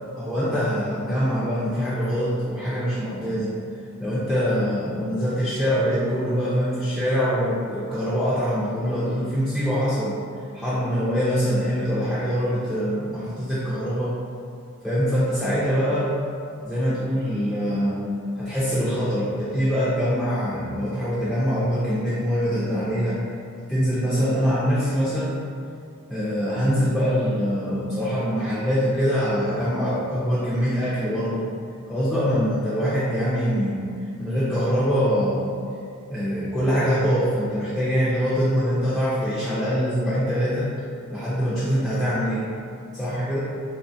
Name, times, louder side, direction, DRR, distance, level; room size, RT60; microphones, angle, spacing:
voice 1, 0.2-3.6 4.0-10.2 10.5-14.1 14.8-16.1 16.6-18.0 18.4-23.2 23.7-25.4 26.1-31.5 31.9-33.8 34.2-35.5 36.1-40.7 41.1-42.5 42.9-43.4, equal, ahead, -11 dB, 0.3 m, -24 dB
3.3 x 2.1 x 2.6 m, 2.3 s
head